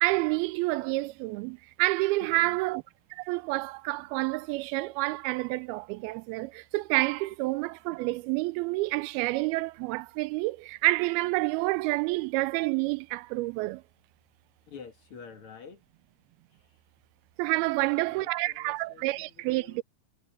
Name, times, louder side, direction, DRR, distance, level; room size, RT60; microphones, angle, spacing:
voice 1, 0.0-2.8 3.1-13.8 17.4-19.8, right 21 dB, 90° right, 2.5 m, -28 dB
voice 2, 2.2-2.6 14.7-15.8 16.5-16.8 17.6-19.8, left 6 dB, 50° left, 1.9 m, -49 dB
omnidirectional pair, 4.3 m